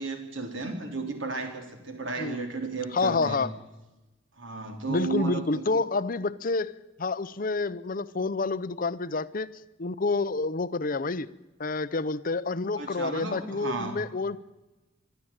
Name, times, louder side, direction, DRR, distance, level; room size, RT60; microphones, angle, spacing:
voice 1, 0.0-3.4 4.4-5.8 12.8-14.0, right 3 dB, 65° right, 4 dB, 3.7 m, -34 dB
voice 2, 2.9-3.5 4.9-6.7 7.0-9.5 9.8-11.3 11.6-14.4, left 3 dB, 45° left, 15 dB, 0.7 m, -28 dB
24.0 x 12.5 x 8.9 m, 1.1 s
head